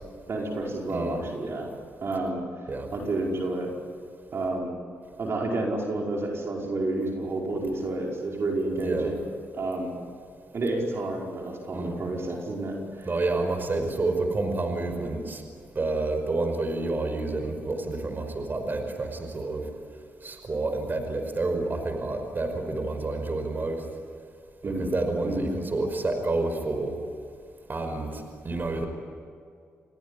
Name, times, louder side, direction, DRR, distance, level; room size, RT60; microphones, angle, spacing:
voice 1, 0.3-1.7 2.0-2.4 2.9-3.7 4.3-4.8 5.2-9.2 9.5-9.9 10.5-13.1 24.6-24.9 25.2-25.5, right 2 dB, 55° right, -1 dB, 5.2 m, -30 dB
voice 2, 8.7-9.1 11.7-12.0 13.1-15.4 15.8-19.6 20.2-23.8 24.6-26.9 27.7-28.9, right 2 dB, 40° right, 6 dB, 5.4 m, -29 dB
29.0 x 18.5 x 10.0 m, 2.3 s
cardioid pair, 65°, 5 cm